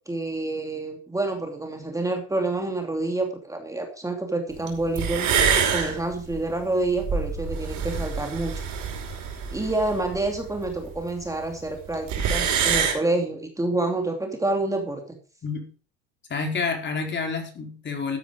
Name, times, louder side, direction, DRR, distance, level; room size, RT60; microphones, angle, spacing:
voice 1, 0.1-5.3 5.7-8.5 9.5-15.2, right 2 dB, 10° right, 3 dB, 2.8 m, -28 dB
sound 1, 4.7-4.8 5.0-11.0 11.2-11.3 11.5-11.6 11.9-12.9, right 6 dB, 60° right, 5.5 m, -26 dB
voice 2, 16.3-18.2, left 4 dB, 35° left, 3 dB, 4.4 m, -28 dB
13.5 x 9.7 x 5.1 m, 0.38 s
supercardioid pair, 95°, 33 cm